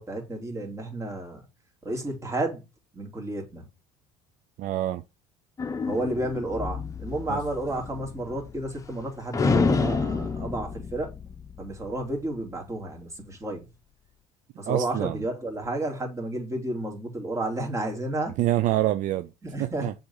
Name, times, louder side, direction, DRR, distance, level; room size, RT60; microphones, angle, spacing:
voice 1, 0.0-1.4 1.8-2.6 2.9-3.7 5.8-11.1 11.6-13.7 14.6-18.4 19.4-19.9, right 1 dB, 20° right, 3.1 m, -31 dB
voice 2, 4.6-5.0 7.3-7.4 14.7-15.2 18.4-19.3 19.8-19.9, right 14 dB, 55° right, 0.5 m, -26 dB
sound 1, 5.6-9.0 9.3-12.0, left 4 dB, 20° left, 1.0 m, -29 dB
7.0 x 4.1 x 5.6 m
supercardioid pair, 110°, 15 cm